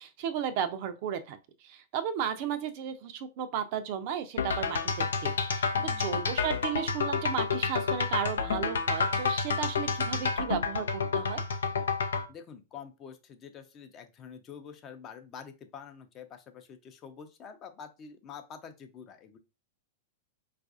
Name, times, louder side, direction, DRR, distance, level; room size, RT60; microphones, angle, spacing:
voice 1, 0.0-11.4, right 8 dB, 50° right, 0.5 m, -34 dB
sound 1, 4.4-12.3, left 5 dB, 80° left, 0.5 m, -29 dB
voice 2, 5.7-6.2 12.3-19.4, left 7 dB, 35° left, 0.6 m, -47 dB
4.5 x 2.4 x 2.5 m
hypercardioid pair, 105°, 0 cm